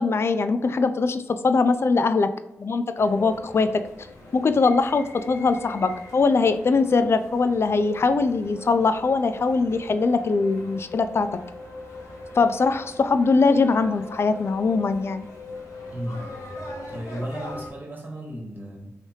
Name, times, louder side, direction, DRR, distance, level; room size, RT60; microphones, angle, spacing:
voice 1, 0.0-2.3 2.6-3.7 4.3-11.3 12.3-15.3, left 4 dB, 50° left, 10 dB, 0.4 m, -21 dB
sound 1, 2.9-17.7, left 2 dB, 80° left, 0.9 m, -41 dB
voice 2, 15.9-16.3 16.9-18.9, equal, 35° right, -1 dB, 1.3 m, -34 dB
3.3 x 3.0 x 2.7 m, 0.90 s
supercardioid pair, 45°, 5 cm